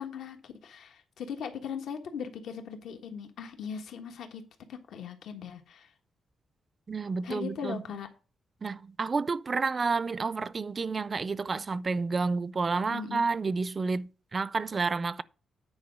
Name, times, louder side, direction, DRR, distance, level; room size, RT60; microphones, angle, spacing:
voice 1, 0.0-4.4 4.7-5.9 7.2-8.1 12.9-13.3, left 7 dB, 80° left, 1.4 m, -39 dB
voice 2, 6.9-7.8 8.6-15.2, right 4 dB, 30° right, 0.4 m, -30 dB
9.6 x 4.8 x 6.2 m
cardioid pair, 130°, 0 cm